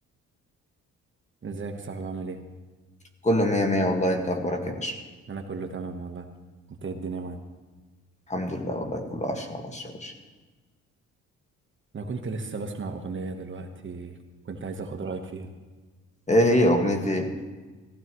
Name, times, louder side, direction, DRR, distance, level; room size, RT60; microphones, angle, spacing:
voice 1, 1.4-2.4 5.3-6.3 6.8-7.4 11.9-14.2 14.4-15.5, right 4 dB, 40° right, 5 dB, 1.3 m, -34 dB
voice 2, 3.2-5.0 8.3-10.1 16.3-17.3, equal, 25° left, 4 dB, 1.8 m, -24 dB
16.0 x 15.5 x 3.2 m, 1.3 s
cardioid pair, 90°, 30 cm